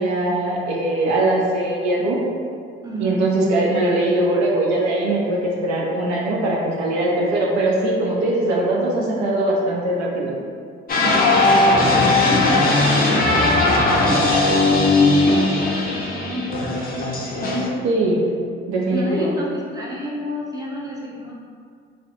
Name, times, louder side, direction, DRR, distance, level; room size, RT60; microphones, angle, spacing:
voice 1, 0.0-2.2 3.0-10.4 17.8-18.3 18.7-19.3, right 1 dB, 65° right, -3 dB, 0.5 m, -21 dB
voice 2, 2.8-3.2 11.0-15.0 15.3-18.0 18.9-21.3, equal, 15° right, -5 dB, 0.7 m, -30 dB
sound 1, 10.9-17.7, left 2 dB, 30° left, 0.5 m, -18 dB
2.4 x 2.0 x 2.7 m, 2.3 s
hypercardioid pair, 50°, 29 cm